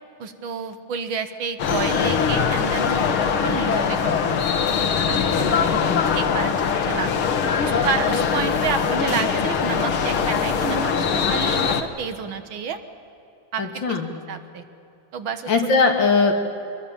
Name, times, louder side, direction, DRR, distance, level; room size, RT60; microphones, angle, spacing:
voice 1, 0.2-4.3 5.1-5.7 6.2-7.1 7.6-12.8 13.5-14.0 14.3-14.6 15.1-15.7, right 6 dB, 75° right, 9 dB, 2.1 m, -30 dB
sound 1, 1.6-11.8, left 6 dB, 85° left, 2.1 m, -22 dB
voice 2, 5.3-6.0 13.6-14.1 15.5-16.3, left 4 dB, 65° left, 3 dB, 2.9 m, -21 dB
24.0 x 21.0 x 7.3 m, 2.8 s
omnidirectional pair, 2.2 m